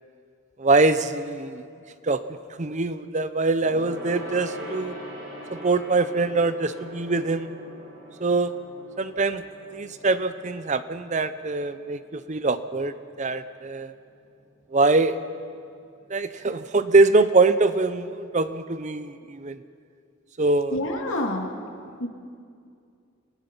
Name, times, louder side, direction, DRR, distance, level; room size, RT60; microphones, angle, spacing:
voice 1, 0.6-1.6 2.0-5.0 5.5-7.5 8.2-8.5 9.0-9.4 9.7-13.9 14.7-15.2 16.1-19.6 20.4-20.8, right 3 dB, 35° right, 12 dB, 0.6 m, -23 dB
Gong, 3.6-13.3 13.6-13.9 14.2-14.3, equal, 50° right, 4.7 m, -41 dB
voice 2, 20.7-21.5 22.0-22.1, left 1 dB, 75° left, 1 dB, 2.6 m, -27 dB
28.0 x 17.0 x 5.5 m, 2.4 s
head